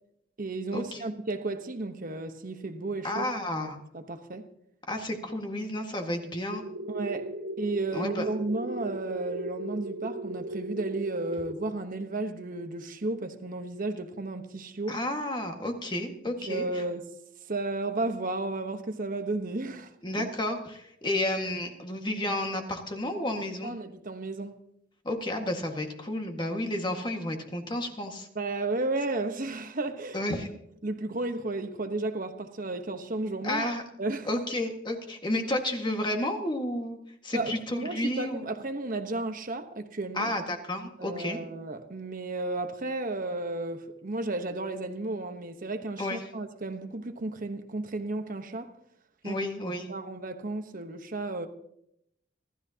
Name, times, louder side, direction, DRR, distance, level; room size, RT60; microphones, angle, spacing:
voice 1, 0.4-3.3 3.6-4.5 6.9-7.3 7.6-15.0 16.5-17.1 17.5-19.9 23.6-24.6 28.3-30.4 30.8-33.7 34.0-34.3 37.3-40.3 41.0-48.7 49.2-49.5 49.9-51.5, right 2 dB, 40° right, 1.1 m, -33 dB
voice 2, 3.0-3.8 4.9-6.6 7.9-8.3 14.9-16.8 20.0-23.7 25.1-28.3 30.1-30.5 33.4-33.8 34.3-37.0 37.2-38.4 40.1-41.4 46.0-46.2 49.2-49.9, left 1 dB, 25° left, 1.7 m, -31 dB
sound 1, 6.5-11.5, right 2 dB, 80° right, 1.5 m, -37 dB
26.0 x 13.5 x 2.9 m
head